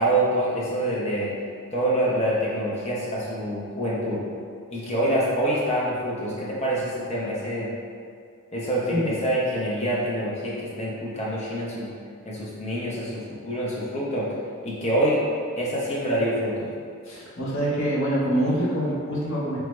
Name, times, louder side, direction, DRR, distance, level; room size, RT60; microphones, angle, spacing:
voice 1, 0.0-1.3 1.7-4.2 4.7-7.7 8.5-11.9 12.2-14.3 14.6-15.2 15.6-16.7, right 1 dB, 30° left, -6 dB, 0.5 m, -26 dB
voice 2, 17.1-19.6, right 1 dB, 60° left, -7 dB, 0.8 m, -25 dB
3.3 x 2.0 x 3.1 m, 2.2 s
head